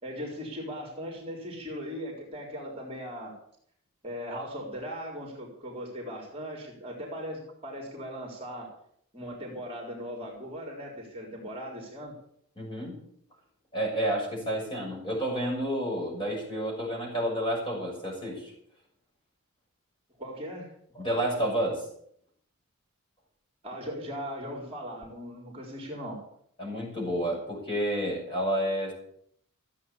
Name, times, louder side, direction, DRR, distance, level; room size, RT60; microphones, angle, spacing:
voice 1, 0.0-3.3 4.0-8.7 9.1-12.1 20.2-20.7 23.6-26.2, equal, 25° right, -1 dB, 3.8 m, -38 dB
voice 2, 12.6-13.0 13.7-18.5 21.0-21.8 26.6-28.9, right 1 dB, 20° left, -2 dB, 6.2 m, -30 dB
15.0 x 8.6 x 8.3 m, 0.68 s
head